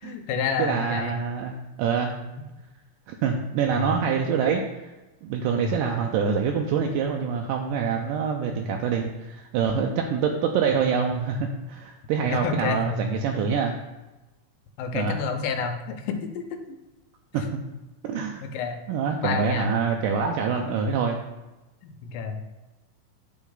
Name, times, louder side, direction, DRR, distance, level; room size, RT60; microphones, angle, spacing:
voice 1, 0.0-1.2 3.7-3.9 5.5-5.7 8.5-8.7 12.3-13.1 14.8-16.8 18.4-18.8 19.2-19.7 21.8-22.4, left 5 dB, 90° left, 5 dB, 2.4 m, -29 dB
voice 2, 0.6-2.1 3.1-4.6 5.2-13.8 14.9-15.2 17.3-17.4 18.0-18.4 18.9-21.2, right 6 dB, 85° right, 2 dB, 2.2 m, -25 dB
10.5 x 3.6 x 3.9 m, 1.1 s
omnidirectional pair, 3.8 m